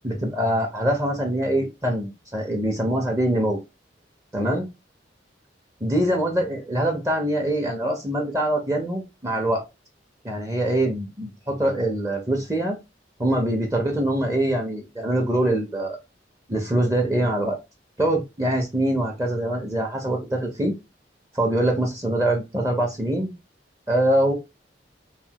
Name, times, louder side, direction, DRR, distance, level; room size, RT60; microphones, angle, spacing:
voice 1, 0.0-3.6 4.3-4.7 5.8-9.6 10.2-12.8 13.2-16.0 16.5-17.6 18.0-20.7 21.3-23.3 23.9-24.3, right 1 dB, 20° right, 2 dB, 0.6 m, -24 dB
3.1 x 2.1 x 2.8 m, 0.23 s
head